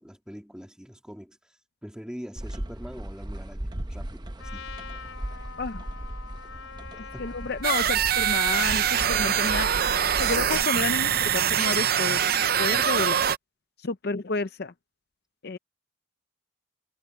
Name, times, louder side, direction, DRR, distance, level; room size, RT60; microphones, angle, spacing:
voice 1, 0.0-4.7 7.1-7.3 13.0-13.2, equal, 5° right, 2.8 m, -43 dB
sound 1, 2.4-10.6, right 1 dB, 20° right, 0.8 m, -37 dB
Trumpet, 4.4-8.7, left 5 dB, 80° left, 3.2 m, -44 dB
voice 2, 7.2-9.7 10.2-13.2 13.8-14.7 15.4-15.6, left 3 dB, 50° left, 0.6 m, -30 dB
sound 2, 7.6-13.4, right 9 dB, 50° right, 0.6 m, -24 dB
head